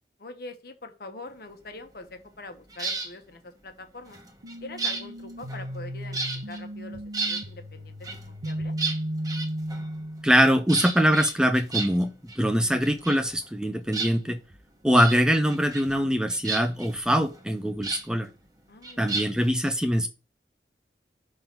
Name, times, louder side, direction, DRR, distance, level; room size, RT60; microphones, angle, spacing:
voice 1, 0.2-4.2 4.6-6.2 6.5-8.7 18.7-19.2, left 2 dB, 60° left, 6 dB, 1.1 m, -43 dB
sound 1, 2.7-3.1 4.1-5.9 6.1-6.6 6.9-7.5 8.0-10.0 10.7-12.4 12.6-13.6 13.9-14.6 14.9-15.2 15.5-16.0 16.3-18.0 18.8-19.5, right 4 dB, 20° right, 1.0 m, -33 dB
sound 2, 4.4-10.4, equal, 85° right, 0.9 m, -35 dB
voice 2, 10.2-14.4 14.8-18.3 19.0-20.1, equal, 5° right, 7 dB, 0.4 m, -23 dB
6.0 x 3.9 x 5.3 m, 0.32 s
head